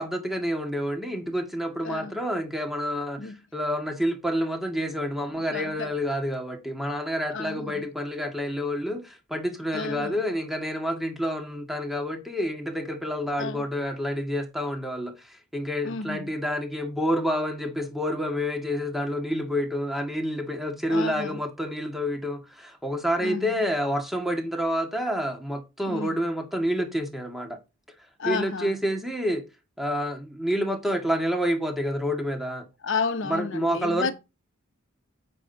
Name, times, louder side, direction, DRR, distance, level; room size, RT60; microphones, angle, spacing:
voice 1, 0.0-27.6 28.3-29.5 29.8-32.7 33.3-34.1, equal, ahead, 2.0 m, -28 dB
voice 2, 1.8-2.2 3.2-3.4 5.2-6.0 7.3-7.9 9.7-10.2 13.4-13.7 15.8-16.3 20.9-21.4 23.2-23.6 25.9-26.2 28.2-28.8 32.8-34.1, left 4 dB, 60° left, 1.0 m, -32 dB
9.7 x 7.5 x 2.9 m
head